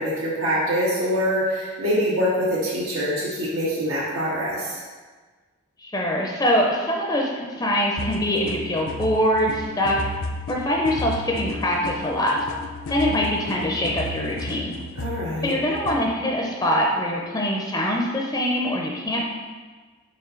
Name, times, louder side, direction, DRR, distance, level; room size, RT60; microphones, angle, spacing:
voice 1, 0.0-4.8 15.0-15.5, equal, 90° right, -7 dB, 1.4 m, -24 dB
voice 2, 5.8-10.0 10.5-12.4 12.9-14.8 15.4-19.3, equal, 15° left, -1 dB, 0.5 m, -23 dB
sound 1, 8.0-16.0, left 2 dB, 75° left, 0.5 m, -33 dB
5.6 x 5.0 x 3.8 m, 1.4 s
head